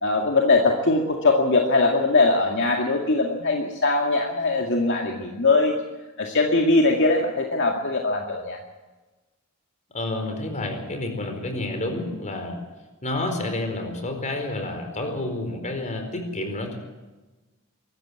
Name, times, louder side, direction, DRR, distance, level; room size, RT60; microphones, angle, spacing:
voice 1, 0.0-5.7 6.2-8.6, left 3 dB, 60° left, 1 dB, 2.1 m, -21 dB
voice 2, 9.9-12.6 13.0-16.8, left 2 dB, 35° left, 5 dB, 4.6 m, -29 dB
23.5 x 13.5 x 8.2 m, 1.2 s
head